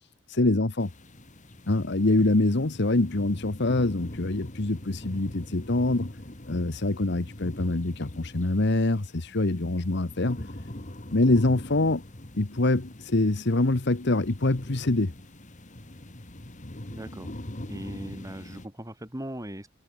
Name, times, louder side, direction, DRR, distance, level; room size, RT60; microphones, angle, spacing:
voice 1, 0.3-0.9 1.7-6.1 6.5-10.4 11.1-12.0 12.4-15.1, left 2 dB, 60° left, 1.2 m, -25 dB
sound 1, 0.8-18.7, left 1 dB, 40° left, 2.2 m, -42 dB
voice 2, 16.9-17.3 17.7-19.7, equal, 15° right, 4.4 m, -39 dB
head